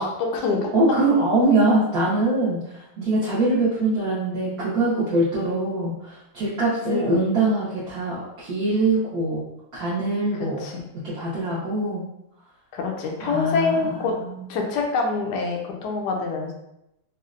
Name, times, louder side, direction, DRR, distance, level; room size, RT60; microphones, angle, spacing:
voice 1, 0.0-0.7 6.8-7.2 10.4-10.8 12.7-14.1 14.5-16.5, left 4 dB, 75° left, 1 dB, 0.9 m, -25 dB
voice 2, 0.7-9.4 9.7-10.7 11.0-12.1 13.2-14.4, right 2 dB, 65° right, -8 dB, 1.0 m, -23 dB
4.0 x 2.1 x 2.4 m, 0.84 s
omnidirectional pair, 2.4 m